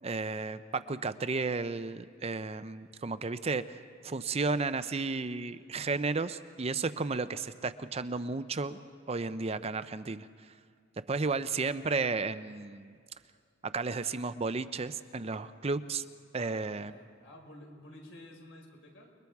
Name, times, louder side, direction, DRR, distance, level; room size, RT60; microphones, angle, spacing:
voice 1, 0.0-3.8 4.0-8.8 9.1-10.3 11.1-13.0 13.6-16.0 16.3-16.9, right 4 dB, 30° right, 12 dB, 0.5 m, -33 dB
voice 2, 16.3-19.1, left 1 dB, 70° left, 1 dB, 4.9 m, -52 dB
29.5 x 22.0 x 4.7 m, 2.2 s
head